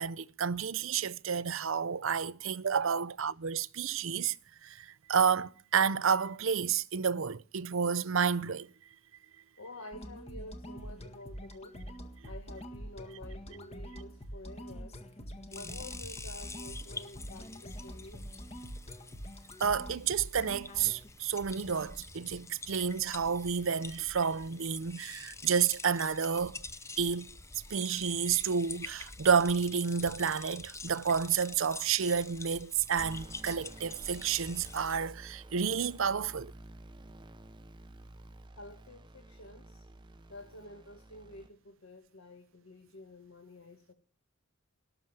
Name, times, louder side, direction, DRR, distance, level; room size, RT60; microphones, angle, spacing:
voice 1, 0.0-4.4 4.6-8.7 19.6-26.6 27.0-27.3 27.7-36.5, right 6 dB, 65° right, 0.6 m, -30 dB
voice 2, 9.6-11.8 12.3-15.0 15.5-18.3 38.6-39.8 40.3-43.9, left 1 dB, 70° left, 1.9 m, -49 dB
sound 1, 9.9-21.1, equal, 30° left, 1.7 m, -45 dB
sound 2, 15.5-35.0, left 3 dB, 15° left, 0.7 m, -47 dB
sound 3, 33.0-41.5, right 1 dB, 20° right, 0.7 m, -51 dB
18.5 x 7.0 x 8.9 m
head